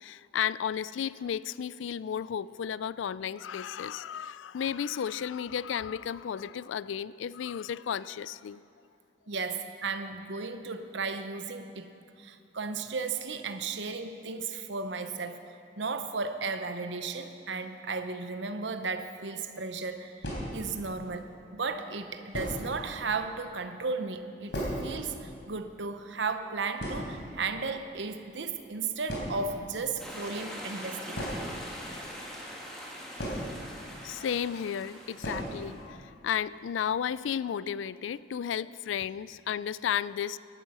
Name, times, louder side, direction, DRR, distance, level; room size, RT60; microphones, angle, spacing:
voice 1, 0.0-8.6 34.0-40.4, left 8 dB, 85° left, 18 dB, 0.3 m, -33 dB
voice 2, 9.3-11.9 12.2-15.4 15.8-20.3 20.5-31.2, right 4 dB, 75° right, 9 dB, 0.8 m, -35 dB
sound 1, 19.2-19.3 20.2-20.9 21.7-21.8 22.3-22.8 23.1-23.2 23.5-23.6 24.0-25.1 25.4-25.5 25.7-26.0 26.4-26.5 26.8-27.7 28.6-28.7 29.0-29.6 31.1-32.2 33.2-34.0 34.3-34.4 35.2-35.7 36.0-36.1 36.4-36.5 37.0-37.3, equal, 70° left, 3.8 m, -36 dB
sound 2, 30.0-35.8, equal, 5° left, 2.0 m, -43 dB
15.5 x 11.5 x 5.5 m, 2.6 s
head